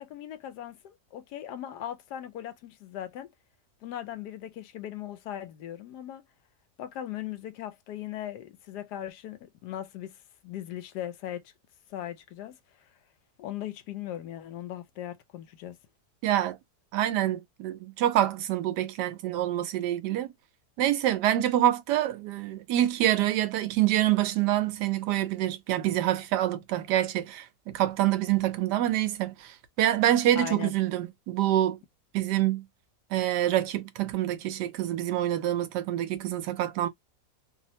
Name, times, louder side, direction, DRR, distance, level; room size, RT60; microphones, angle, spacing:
voice 1, 0.0-3.3 3.8-6.2 6.8-10.2 10.4-11.4 11.9-12.6 13.4-15.8 30.3-30.7, left 11 dB, 80° left, 1.2 m, -38 dB
voice 2, 16.2-16.6 16.9-20.3 20.8-31.8 32.1-32.6 33.1-36.9, right 13 dB, 90° right, 1.2 m, -26 dB
3.1 x 2.1 x 2.7 m
omnidirectional pair, 1.7 m